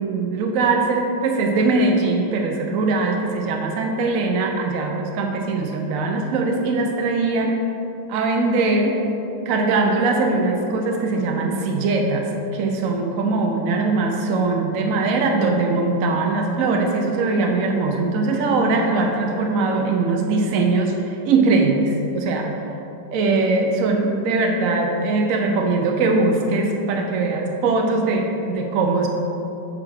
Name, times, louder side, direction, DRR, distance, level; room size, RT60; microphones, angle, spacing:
voice 1, 0.0-7.6 8.1-9.0 9.5-22.5 23.1-29.1, right 3 dB, 70° right, 2 dB, 0.8 m, -21 dB
8.5 x 3.2 x 6.2 m, 3.0 s
omnidirectional pair, 2.0 m